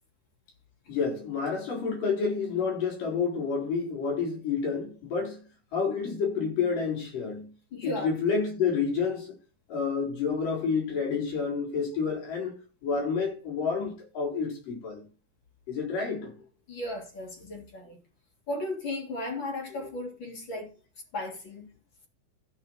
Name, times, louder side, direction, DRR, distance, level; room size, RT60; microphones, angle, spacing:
voice 1, 0.9-5.4 5.7-7.5 7.8-9.3 9.7-15.0 15.7-16.3 19.8-20.0, left 5 dB, 65° left, 6.1 m, -29 dB
voice 2, 7.7-8.1 16.7-18.0 18.5-20.7 21.1-21.7, left 2 dB, 35° left, 3.5 m, -35 dB
15.0 x 6.2 x 4.5 m
omnidirectional pair, 4.2 m